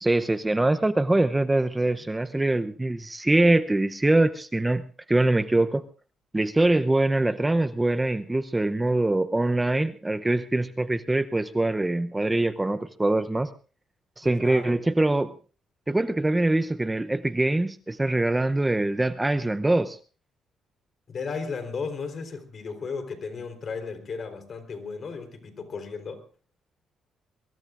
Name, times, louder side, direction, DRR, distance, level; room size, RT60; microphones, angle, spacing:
voice 1, 0.0-5.8 6.3-13.5 14.2-15.3 15.9-20.0, right 2 dB, 15° right, 10 dB, 0.7 m, -23 dB
voice 2, 14.2-14.7 21.1-26.2, left 5 dB, 50° left, 7 dB, 3.9 m, -35 dB
23.0 x 23.0 x 2.5 m, 0.38 s
cardioid pair, 90°, 0 cm